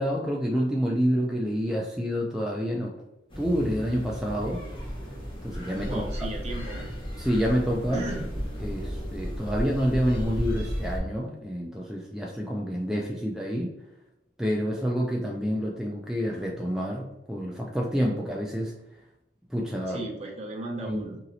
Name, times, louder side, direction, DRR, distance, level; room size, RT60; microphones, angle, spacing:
voice 1, 0.0-2.9 3.4-4.6 5.4-6.0 7.2-8.0 8.6-13.7 14.4-18.7 19.5-20.0 20.9-21.1, equal, 5° right, -2 dB, 0.3 m, -28 dB
sound 1, 3.3-11.0, equal, 30° left, 0.9 m, -34 dB
voice 2, 5.8-6.9 7.9-8.3 19.9-21.2, right 1 dB, 35° right, -1 dB, 0.8 m, -35 dB
2.9 x 2.8 x 2.6 m, 0.91 s
head